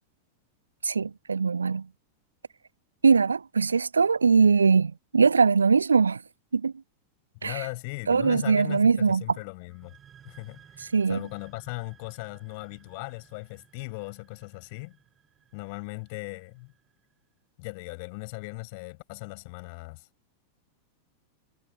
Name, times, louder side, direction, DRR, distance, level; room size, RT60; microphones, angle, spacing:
voice 1, 0.8-1.9 3.0-6.2 6.5-6.7 7.4-7.6 8.1-9.2 10.9-11.2, right 5 dB, 75° right, 0.3 m, -21 dB
voice 2, 7.4-10.0 10.2-15.0 15.5-16.7 17.6-20.1, left 30 dB, 45° left, 7.8 m, -38 dB
sound 1, 9.7-17.1, right 8 dB, 25° right, 5.1 m, -58 dB
figure-of-eight pair, 90°, 0 cm